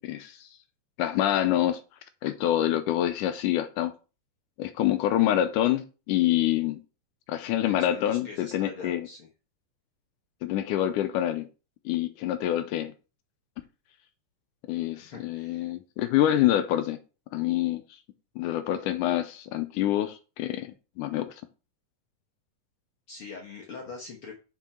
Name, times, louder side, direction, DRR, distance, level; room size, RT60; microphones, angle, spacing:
voice 1, 0.0-0.5 1.0-1.8 2.2-3.9 4.6-6.8 7.3-9.1 10.4-11.5 11.9-12.9 14.7-17.0 17.3-17.8 18.4-21.3, left 12 dB, 80° left, 2.0 m, -26 dB
voice 2, 7.6-9.3 14.9-15.7 23.1-24.3, left 4 dB, 65° left, 1.4 m, -43 dB
6.0 x 5.8 x 4.3 m
omnidirectional pair, 3.9 m